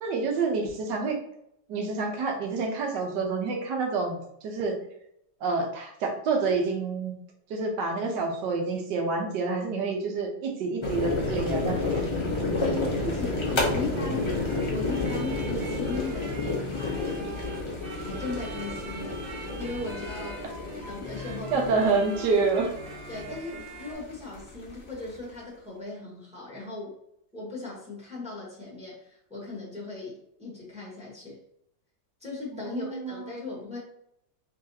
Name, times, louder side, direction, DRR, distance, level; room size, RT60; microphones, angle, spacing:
voice 1, 0.0-1.2 1.7-4.2 4.4-4.8 5.4-7.2 7.5-12.0 21.5-22.7 32.6-33.4, right 4 dB, 75° right, 2 dB, 1.4 m, -28 dB
sound 1, 10.8-25.3, left 2 dB, 40° left, 0.4 m, -31 dB
voice 2, 12.6-14.4 14.7-17.2 17.9-19.2 19.6-20.4 20.9-21.7 22.2-22.4 23.1-26.9 27.3-31.4 32.2-33.8, left 3 dB, 5° right, -5 dB, 1.2 m, -37 dB
sound 2, 13.4-23.9, right 1 dB, 40° right, 0.9 m, -41 dB
3.9 x 3.2 x 2.8 m, 0.77 s
omnidirectional pair, 1.9 m